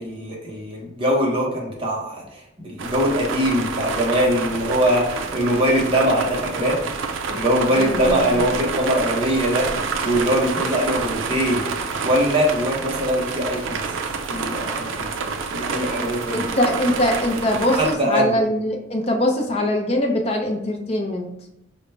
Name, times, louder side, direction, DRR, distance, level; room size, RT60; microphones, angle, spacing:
voice 1, 0.0-6.8 7.3-9.7 10.0-11.7 12.0-13.8 14.3-16.7 17.7-18.5, equal, 25° right, -3 dB, 0.8 m, -22 dB
sound 1, 2.8-18.0, right 4 dB, 85° right, 0.4 m, -28 dB
voice 2, 7.8-8.5 16.3-21.3, left 1 dB, 30° left, 2 dB, 0.5 m, -22 dB
4.9 x 2.1 x 3.2 m, 0.85 s
head